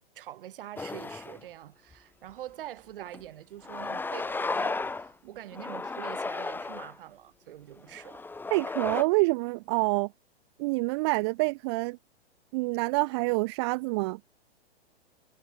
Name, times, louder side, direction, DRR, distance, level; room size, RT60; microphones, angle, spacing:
voice 1, 0.1-8.3, right 13 dB, 60° right, 6.6 m, -44 dB
sound 1, 0.8-1.4 1.9-2.0 3.1-3.2 3.6-5.1 5.5-6.9 7.8-9.0, left 3 dB, 5° left, 1.4 m, -34 dB
voice 2, 8.5-10.1 10.6-12.0 12.5-14.2, right 26 dB, 25° right, 0.4 m, -27 dB
hypercardioid pair, 120°, 31 cm